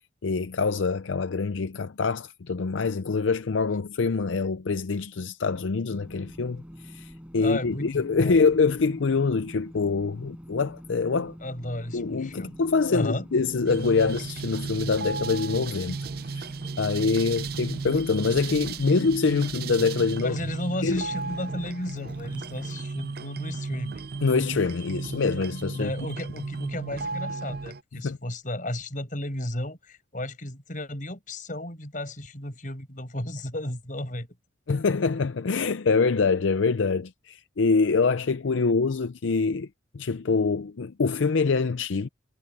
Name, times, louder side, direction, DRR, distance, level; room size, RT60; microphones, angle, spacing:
voice 1, 0.2-11.3 11.9-16.0 16.3-16.5 16.8-20.4 20.8-21.0 24.2-25.9 28.0-28.2 34.7-39.7 39.9-42.1, left 4 dB, 75° left, 0.5 m, -25 dB
sound 1, 5.9-22.8, equal, 5° right, 5.7 m, -45 dB
voice 2, 7.3-8.5 11.4-12.6 12.9-13.2 20.2-24.0 25.7-34.3, left 1 dB, 40° left, 5.9 m, -34 dB
sound 2, 13.7-27.8, right 4 dB, 50° right, 0.5 m, -34 dB
head